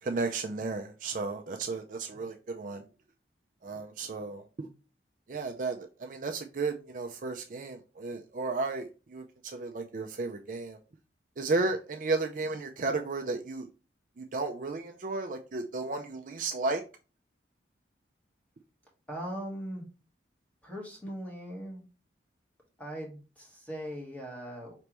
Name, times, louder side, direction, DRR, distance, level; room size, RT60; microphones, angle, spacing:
voice 1, 0.0-2.8 3.6-4.7 5.3-10.8 11.4-13.7 14.2-16.8, right 3 dB, 45° right, 0.4 m, -33 dB
voice 2, 19.1-19.8 20.6-21.8 22.8-24.7, equal, 10° left, 1.4 m, -39 dB
5.0 x 3.3 x 3.0 m
head